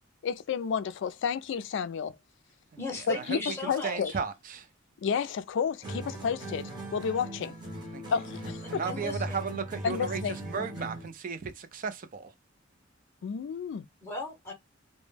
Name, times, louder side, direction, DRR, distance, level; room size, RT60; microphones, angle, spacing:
voice 1, 0.2-2.1 3.1-3.4 3.7-4.1 5.0-7.5 8.1-8.9 9.8-10.7 13.2-13.8, left 6 dB, 65° left, 0.3 m, -31 dB
voice 2, 2.8-4.2 8.8-9.4 14.0-14.5, left 3 dB, 15° left, 0.7 m, -37 dB
voice 3, 3.8-4.7 7.9-8.0 8.7-12.3, right 5 dB, 45° right, 0.4 m, -35 dB
sound 1, 5.8-11.2, right 1 dB, 20° right, 0.8 m, -39 dB
2.1 x 2.0 x 3.2 m
head